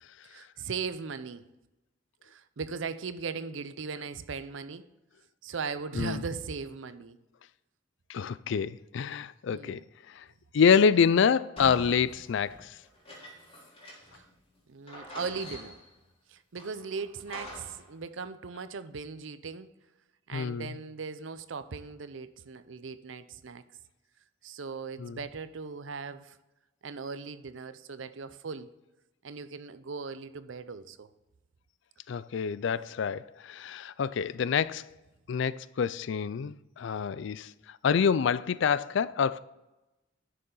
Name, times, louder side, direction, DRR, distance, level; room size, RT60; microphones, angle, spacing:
voice 1, 0.2-1.5 2.2-4.9 5.4-7.2 9.5-9.8 14.1-14.3 14.7-15.8 16.3-19.7 20.3-23.6 24.4-26.4 26.8-28.7 29.2-31.1, right 5 dB, 75° right, 0.6 m, -38 dB
voice 2, 8.1-9.8 10.2-10.3 10.5-12.7 20.3-20.7 25.0-25.2 32.1-34.9 35.3-37.5 37.8-39.4, left 6 dB, 70° left, 0.4 m, -27 dB
sound 1, 11.6-14.3 14.5-14.6 14.9-16.0 16.6-17.9, left 1 dB, 30° left, 3.3 m, -46 dB
11.0 x 6.7 x 3.8 m
head